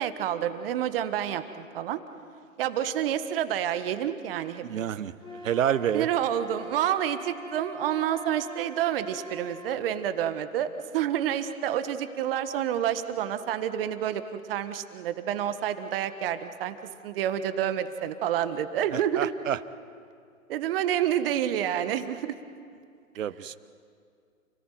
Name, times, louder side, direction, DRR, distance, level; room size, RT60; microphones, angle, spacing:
voice 1, 0.0-2.0 2.6-4.9 5.9-14.2 14.5-16.7 17.0-19.3 20.5-22.4, right 10 dB, 40° right, 10 dB, 1.6 m, -28 dB
voice 2, 4.6-5.1 5.4-6.1 18.9-19.6 23.2-23.6, right 9 dB, 65° right, 16 dB, 1.1 m, -28 dB
Wind instrument woodwind instrument, 5.2-9.8, equal, 10° left, 2.4 m, -44 dB
29.0 x 18.5 x 9.2 m, 2.2 s
hypercardioid pair, 135°, 42 cm